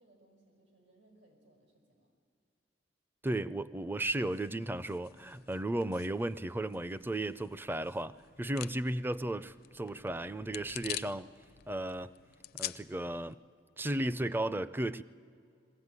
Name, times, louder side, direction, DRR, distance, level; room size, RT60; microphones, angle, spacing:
voice 1, 0.0-2.1, right 1 dB, 85° right, 5.7 m, -65 dB
voice 2, 3.2-8.1 8.4-11.3 11.7-12.1 12.5-13.4 13.8-15.0, right 1 dB, 10° right, 0.4 m, -34 dB
sound 1, 4.2-13.3, left 13 dB, 55° left, 0.5 m, -47 dB
21.0 x 15.5 x 9.6 m
head